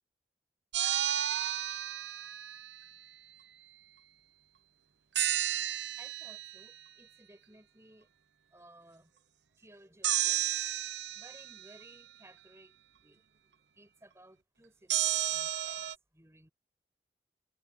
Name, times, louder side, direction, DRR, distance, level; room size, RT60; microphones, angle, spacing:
sound 1, 0.7-2.9 5.2-6.6 10.0-11.7 14.9-15.9, right 12 dB, 80° right, 0.8 m, -32 dB
voice 1, 6.0-8.1 8.5-9.2 9.6-10.4 10.8-16.5, right 1 dB, 15° right, 6.4 m, -59 dB
head